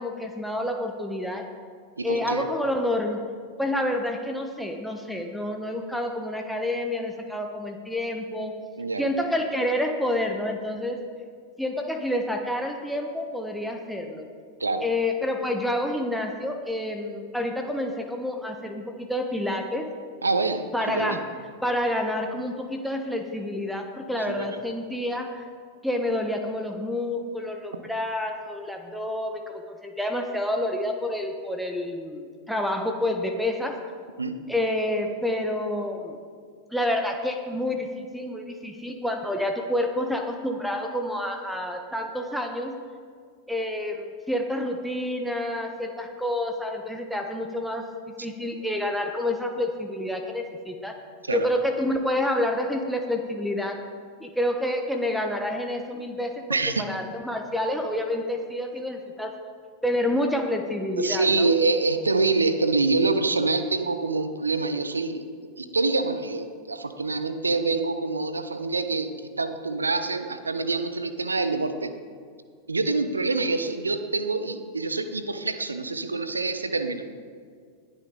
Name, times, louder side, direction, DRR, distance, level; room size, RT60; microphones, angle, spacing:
voice 1, 0.0-1.4 2.0-3.2 3.6-8.5 9.0-11.0 11.6-14.3 14.8-19.9 20.7-21.2 21.6-25.4 25.8-33.8 34.5-36.2 36.7-42.7 43.5-47.9 48.2-50.9 51.3-53.8 54.2-56.4 56.8-59.3 59.8-61.5, left 1 dB, ahead, 4 dB, 1.1 m, -28 dB
voice 2, 2.0-2.4 8.8-9.1 14.6-14.9 20.2-21.2 24.2-24.6 34.2-34.4 51.2-51.5 56.5-56.9 61.0-69.1 69.4-71.9 72.7-77.1, right 3 dB, 80° right, 10 dB, 0.9 m, -26 dB
19.5 x 10.5 x 3.8 m, 2.1 s
figure-of-eight pair, 90°, 0 cm